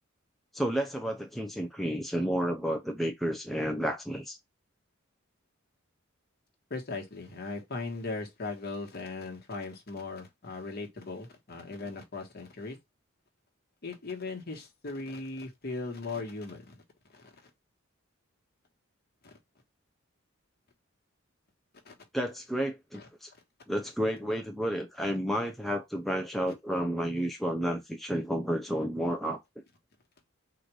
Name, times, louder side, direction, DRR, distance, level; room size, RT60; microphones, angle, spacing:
voice 1, 0.5-4.4 22.1-23.3 23.7-29.4, equal, ahead, 0.5 m, -31 dB
voice 2, 6.7-12.8 13.8-16.7 17.1-17.4 21.8-21.9 22.9-23.1, left 3 dB, 50° left, 1.3 m, -38 dB
3.9 x 2.5 x 4.6 m
head